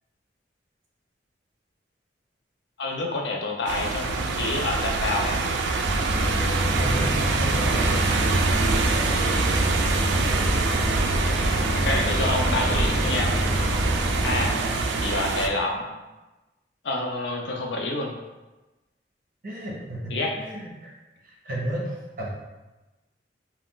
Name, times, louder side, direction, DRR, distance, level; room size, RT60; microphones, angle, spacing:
voice 1, 2.8-5.4 9.2-9.4 11.7-13.3 14.2-14.6 15.0-15.9 16.8-18.1 20.1-20.3, left 2 dB, 75° left, 1 dB, 0.5 m, -28 dB
sound 1, 3.7-15.5, right 3 dB, 80° right, 0.3 m, -25 dB
sound 2, 5.8-14.5, equal, 50° left, 1.2 m, -27 dB
sound 3, 6.4-14.7, equal, 15° left, 0.4 m, -38 dB
voice 2, 6.8-8.0 14.6-14.8 19.4-20.9 21.2-22.3, right 1 dB, 50° right, -4 dB, 0.7 m, -33 dB
2.3 x 2.3 x 3.6 m, 1.1 s
head